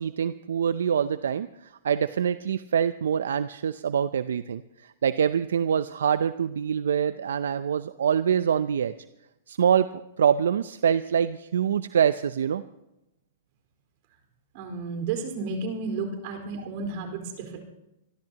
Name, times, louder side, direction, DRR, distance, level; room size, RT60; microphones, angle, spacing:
voice 1, 0.0-8.9 9.5-9.9 10.2-12.6, right 8 dB, 80° right, 14 dB, 0.5 m, -25 dB
voice 2, 14.5-17.6, right 4 dB, 55° right, 5 dB, 4.5 m, -32 dB
25.5 x 13.0 x 2.9 m, 0.90 s
hypercardioid pair, 125°, 0 cm